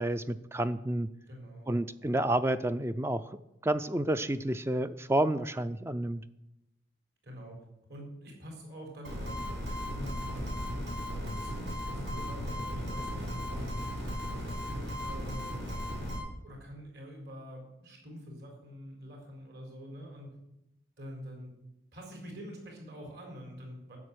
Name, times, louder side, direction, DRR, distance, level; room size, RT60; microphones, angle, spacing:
voice 1, 0.0-1.1 1.7-3.2 3.6-6.2, right 1 dB, 15° right, 13 dB, 0.3 m, -30 dB
voice 2, 1.3-1.8 7.2-7.6 7.9-9.3 9.7-13.7 14.2-15.5 16.4-20.3 21.0-21.5 21.9-24.0, equal, 55° right, 1 dB, 4.3 m, -46 dB
sound 1, 9.0-16.2, equal, 80° right, 6.1 m, -36 dB
11.0 x 6.9 x 9.0 m, 0.88 s
head